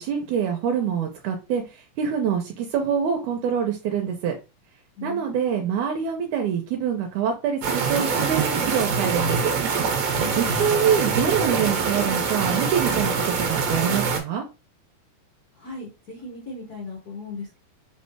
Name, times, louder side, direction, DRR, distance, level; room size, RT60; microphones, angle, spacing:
voice 1, 0.0-1.6 2.0-4.3 5.0-9.5 10.4-13.1 13.5-14.4, right 7 dB, 80° right, 3 dB, 2.0 m, -25 dB
voice 2, 5.0-5.6 10.2-10.7 15.6-17.6, left 3 dB, 50° left, -6 dB, 1.1 m, -37 dB
sound 1, 7.6-14.2, right 5 dB, 65° right, 1.8 m, -24 dB
4.6 x 3.1 x 3.2 m, 0.29 s
omnidirectional pair, 3.7 m